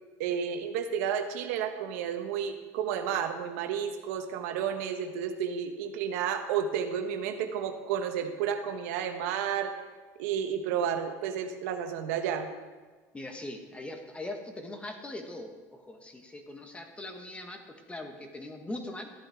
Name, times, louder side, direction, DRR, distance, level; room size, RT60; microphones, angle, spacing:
voice 1, 0.2-9.7 10.2-12.5, right 8 dB, 85° right, 6 dB, 1.0 m, -31 dB
voice 2, 13.1-19.1, left 2 dB, 15° left, 4 dB, 1.3 m, -41 dB
13.0 x 8.7 x 3.6 m, 1.3 s
supercardioid pair, 105°, 8 cm